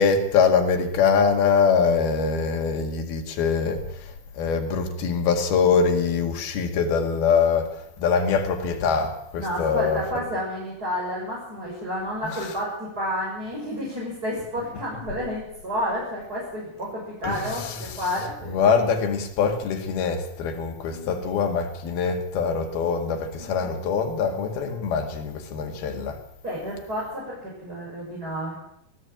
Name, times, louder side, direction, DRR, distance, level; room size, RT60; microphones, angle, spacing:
voice 1, 0.0-3.8 4.4-7.7 8.0-10.0 12.2-12.4 17.2-18.0 18.5-26.2, left 5 dB, 85° left, 4.1 m, -23 dB
voice 2, 9.4-18.6 20.9-21.2 23.3-23.8 26.4-27.4 27.6-28.5, equal, 25° right, 7.0 m, -30 dB
20.0 x 16.0 x 9.0 m
omnidirectional pair, 4.3 m